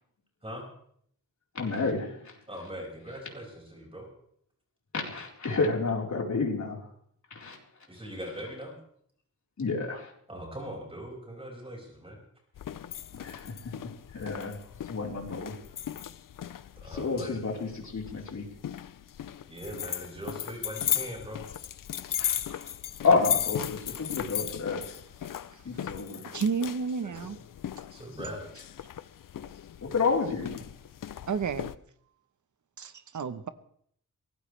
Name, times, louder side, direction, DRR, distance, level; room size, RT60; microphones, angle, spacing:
voice 1, 1.5-2.4 4.9-6.9 7.3-7.9 9.6-10.1 13.1-15.6 16.8-18.5 22.2-22.7 23.0-24.8 25.6-26.2 29.8-30.6, left 4 dB, 60° left, -1 dB, 4.3 m, -30 dB
voice 2, 2.5-4.1 7.9-8.8 10.3-12.2 16.8-17.3 19.5-21.5 27.9-28.4, equal, 15° right, -1 dB, 5.8 m, -40 dB
sound 1, 12.6-31.8, left 10 dB, 80° left, 0.6 m, -37 dB
voice 3, 26.3-27.4 31.3-31.7 32.8-33.5, right 5 dB, 65° right, 11 dB, 1.1 m, -31 dB
24.0 x 18.0 x 3.3 m, 0.65 s
wide cardioid pair, 175°, 32 cm